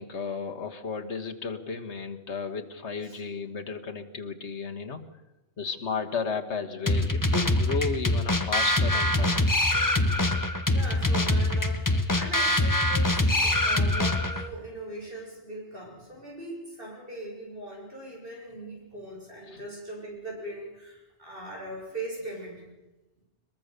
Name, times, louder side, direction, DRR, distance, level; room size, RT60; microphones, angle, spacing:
voice 1, 0.0-5.0 5.6-9.5 10.0-10.2 19.5-19.7, left 5 dB, 85° left, 5 dB, 1.9 m, -34 dB
sound 1, 6.9-14.5, left 1 dB, 20° left, 1.1 m, -24 dB
voice 2, 10.7-22.7, right 1 dB, 55° right, -2 dB, 7.7 m, -40 dB
22.0 x 21.5 x 6.8 m, 1.0 s
omnidirectional pair, 1.1 m